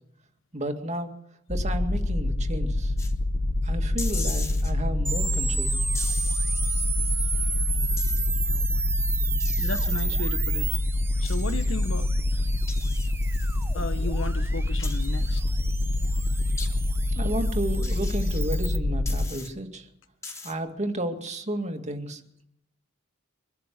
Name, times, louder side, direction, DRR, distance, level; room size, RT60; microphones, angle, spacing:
voice 1, 0.5-1.1 1.5-2.9 3.6-5.8 17.2-19.9 20.4-22.4, right 1 dB, 35° right, 2.1 m, -32 dB
sound 1, 1.5-19.3, left 1 dB, 35° left, 1.1 m, -26 dB
sound 2, 3.0-3.1 4.0-4.7 5.9-6.8 8.0-8.3 9.4-10.0 11.2-11.7 12.7-13.6 14.8-15.5 16.6-16.7 17.8-18.4 19.0-19.5 20.2-20.5, left 3 dB, 15° left, 3.1 m, -39 dB
sound 3, 5.1-18.8, right 4 dB, 10° right, 0.9 m, -33 dB
voice 2, 9.6-10.7 11.2-12.4 13.7-15.5, left 2 dB, 70° left, 1.4 m, -34 dB
24.5 x 12.5 x 8.4 m
head